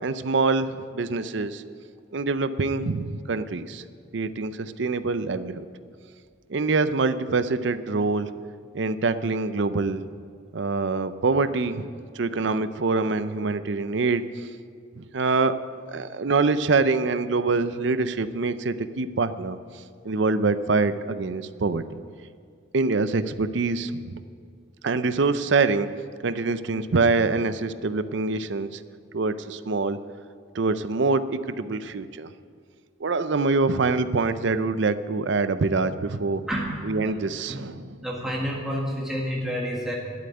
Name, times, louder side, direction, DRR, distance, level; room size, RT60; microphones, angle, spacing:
voice 1, 0.0-1.6 2.1-3.8 4.1-5.6 6.5-8.3 8.7-10.0 10.5-14.2 15.0-15.6 15.9-19.6 20.0-21.8 22.7-24.2 24.8-25.9 26.2-28.8 29.1-30.0 30.5-32.3 33.0-36.4 36.8-38.0, right 3 dB, 65° right, 12 dB, 0.5 m, -25 dB
voice 2, 36.5-36.9 37.5-37.7 38.0-39.9, equal, ahead, -4 dB, 1.8 m, -29 dB
12.0 x 7.8 x 9.3 m, 2.2 s
head